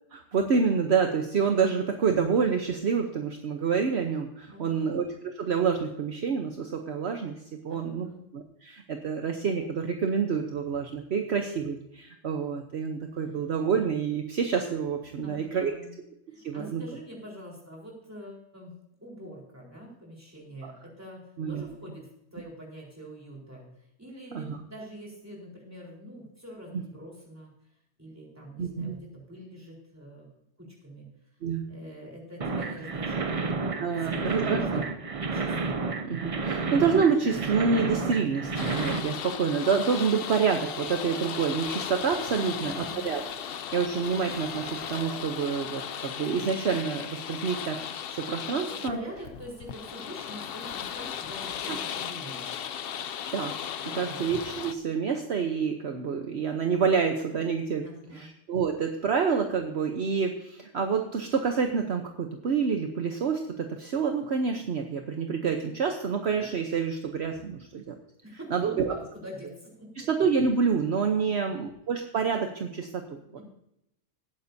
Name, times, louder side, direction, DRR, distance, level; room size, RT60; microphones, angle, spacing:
voice 1, 0.1-5.1 5.3-7.3 7.6-8.1 8.3-15.7 16.4-16.8 20.6-20.7 21.4-21.6 24.3-24.6 26.7-26.8 28.6-28.9 31.4-31.6 33.8-34.8 36.0-43.2 43.7-49.0 51.7-51.8 53.3-53.5 53.9-57.9 58.1-67.9 68.5-68.9 70.0-73.2, right 6 dB, 60° right, 4 dB, 1.1 m, -28 dB
voice 2, 4.5-5.0 7.7-8.2 15.2-15.9 16.3-18.7 19.0-23.7 24.0-27.5 28.0-30.3 30.6-31.1 31.7-33.4 33.8-35.8 42.4-43.1 48.6-52.5 53.8-54.2 57.8-58.3 68.2-70.1 71.2-71.6 73.3-73.4, equal, 10° right, -3 dB, 4.2 m, -44 dB
sound 1, 32.4-39.0, right 4 dB, 35° right, 0.6 m, -30 dB
sound 2, 38.6-54.7, left 9 dB, 60° left, 0.7 m, -36 dB
sound 3, 40.0-41.6 42.0-43.6 44.0-45.6, right 6 dB, 5° left, 1.4 m, -47 dB
17.5 x 9.6 x 2.7 m, 0.80 s
omnidirectional pair, 1.3 m